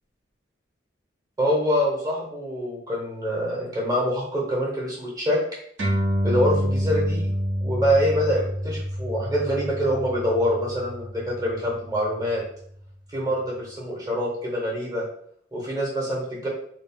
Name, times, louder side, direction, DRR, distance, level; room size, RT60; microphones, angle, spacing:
voice 1, 1.4-5.4 6.2-7.3 7.6-12.4 13.1-15.0 15.5-16.5, equal, 20° right, -3 dB, 0.9 m, -25 dB
sound 1, 5.8-12.6, equal, 80° right, 0.9 m, -28 dB
3.6 x 2.0 x 2.2 m, 0.64 s
head